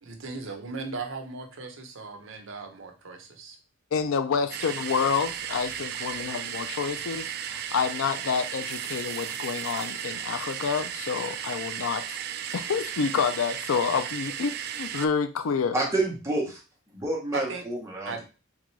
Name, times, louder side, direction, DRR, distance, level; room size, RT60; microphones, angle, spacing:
voice 1, 0.0-3.6 17.3-17.6 18.0-18.2, right 4 dB, 65° right, 4 dB, 0.8 m, -37 dB
voice 2, 3.9-12.2 12.5-15.8, left 6 dB, 75° left, 9 dB, 0.4 m, -28 dB
sound 1, 4.5-15.1, right 9 dB, 50° right, 0.3 m, -35 dB
voice 3, 15.7-16.6 16.9-18.2, right 2 dB, 15° right, -1 dB, 1.0 m, -29 dB
3.7 x 3.6 x 3.2 m, 0.32 s
head